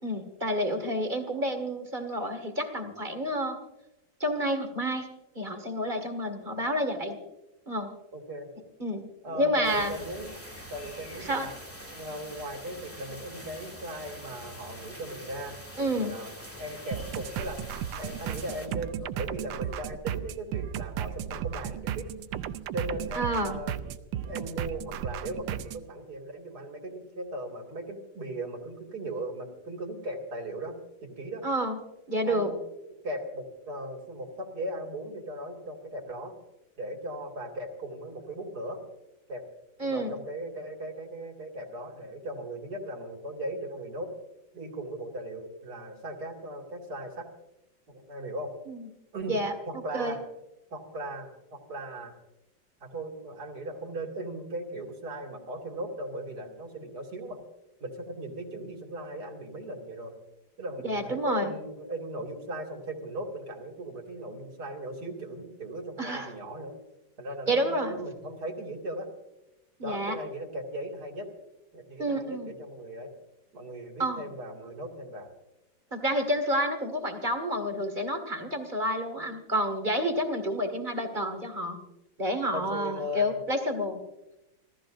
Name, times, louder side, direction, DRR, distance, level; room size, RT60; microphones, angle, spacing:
voice 1, 0.0-3.6 4.2-5.1 5.4-7.2 7.7-7.9 8.8-9.0 9.3-9.9 11.2-11.5 15.8-16.1 23.1-23.6 31.4-31.8 32.1-32.5 39.8-40.2 48.7-48.9 49.3-49.5 49.9-50.2 60.8-61.5 66.0-66.3 67.5-68.0 69.8-70.2 72.0-72.5 74.0-74.2 75.9-81.8 82.2-84.0, equal, 25° right, 6 dB, 1.9 m, -29 dB
voice 2, 8.1-8.5 9.2-10.3 10.7-11.5 11.9-16.3 16.6-17.6 18.0-22.1 22.7-23.8 24.2-30.8 31.0-31.4 32.2-32.6 33.0-36.4 36.8-38.8 39.3-39.4 39.8-44.1 44.5-47.3 47.9-48.5 49.1-49.4 49.6-50.2 50.7-52.1 52.8-57.4 57.8-60.1 60.6-66.8 67.2-69.1 69.8-71.3 71.7-73.1 73.5-75.3 82.5-83.4, right 1 dB, 50° right, 2 dB, 2.9 m, -38 dB
sound 1, 9.6-18.7, equal, 5° left, 2.1 m, -45 dB
sound 2, 16.9-25.8, right 10 dB, 75° right, 1.3 m, -35 dB
30.0 x 14.0 x 2.6 m, 0.92 s
omnidirectional pair, 2.2 m